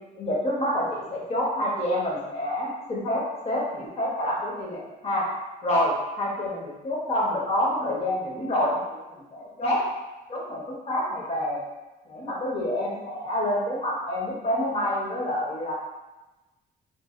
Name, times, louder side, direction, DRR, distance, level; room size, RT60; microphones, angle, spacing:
voice 1, 0.2-5.3 5.6-9.0 9.3-9.9 10.3-11.6 12.1-15.7, left 1 dB, 40° left, -4 dB, 0.9 m, -27 dB
4.0 x 2.4 x 2.4 m, 1.1 s
cardioid pair, 150°, 16 cm